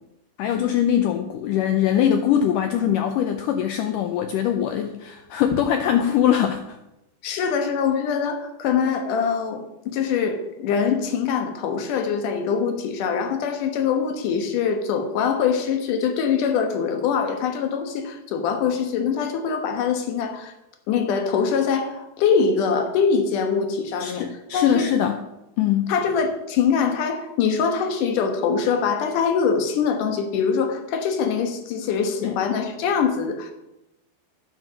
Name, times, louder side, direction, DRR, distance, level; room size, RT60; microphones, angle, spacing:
voice 1, 0.4-6.8 24.0-25.2 25.6-25.9 32.2-32.4, left 9 dB, 85° left, 7 dB, 1.9 m, -22 dB
voice 2, 7.2-20.5 20.9-24.2 24.5-24.9 25.9-33.5, left 6 dB, 65° left, 6 dB, 2.5 m, -23 dB
9.7 x 7.6 x 6.2 m, 0.91 s
omnidirectional pair, 4.4 m